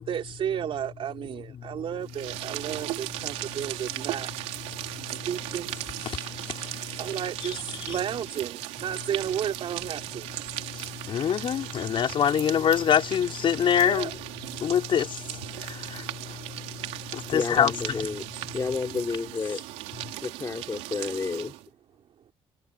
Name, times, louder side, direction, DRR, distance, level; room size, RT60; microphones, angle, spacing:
voice 1, 0.0-4.3 5.1-5.7 7.0-10.3 13.8-14.1, right 9 dB, 55° right, 3.5 m, -33 dB
sound 1, 2.0-21.7, right 16 dB, 90° right, 3.3 m, -37 dB
voice 2, 6.0-7.0 7.4-8.0 10.7-14.1 14.6-16.3 17.1-17.7, left 8 dB, 50° left, 5.6 m, -26 dB
voice 3, 17.2-18.2 18.5-19.6 20.2-21.5, left 4 dB, 30° left, 4.9 m, -31 dB
cardioid pair, 105°, 11 cm